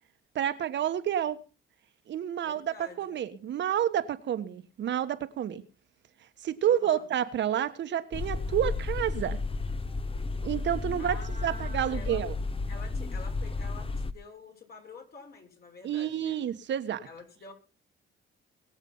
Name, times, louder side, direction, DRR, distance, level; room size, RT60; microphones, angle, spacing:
voice 1, 0.3-1.4 2.1-5.6 6.4-9.4 10.4-12.3 15.8-17.1, right 10 dB, 65° right, 1.4 m, -29 dB
voice 2, 2.4-3.2 6.6-7.1 11.0-12.2 12.7-16.4 17.0-17.5, left 3 dB, 50° left, 6.3 m, -48 dB
sound 1, 8.1-14.1, left 3 dB, 25° left, 1.2 m, -33 dB
22.0 x 7.4 x 5.5 m
cardioid pair, 90°, 20 cm